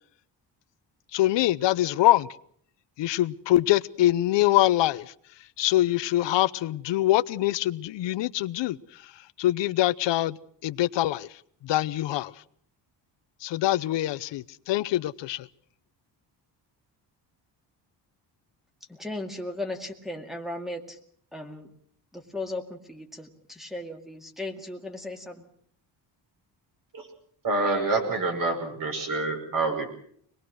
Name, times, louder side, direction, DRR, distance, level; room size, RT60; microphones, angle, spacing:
voice 1, 1.1-2.3 3.0-5.1 5.6-8.8 9.4-10.4 10.6-11.3 11.6-12.3 13.4-15.5, left 15 dB, 85° left, 17 dB, 0.8 m, -24 dB
voice 2, 18.9-21.0 21.3-21.7 22.1-25.4, left 2 dB, ahead, 0 dB, 2.1 m, -36 dB
voice 3, 27.4-29.9, right 3 dB, 50° right, 4 dB, 5.8 m, -27 dB
25.0 x 20.0 x 6.4 m, 0.64 s
cardioid pair, 160°, 42 cm